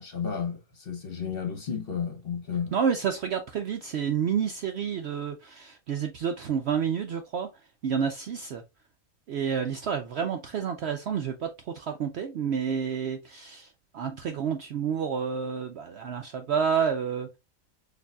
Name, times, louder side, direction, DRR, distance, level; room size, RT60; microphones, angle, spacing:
voice 1, 0.0-2.7, left 7 dB, 45° left, 1.0 m, -32 dB
voice 2, 2.7-7.5 7.8-8.6 9.3-17.4, right 7 dB, 65° right, 0.6 m, -29 dB
6.6 x 2.6 x 2.3 m
omnidirectional pair, 1.5 m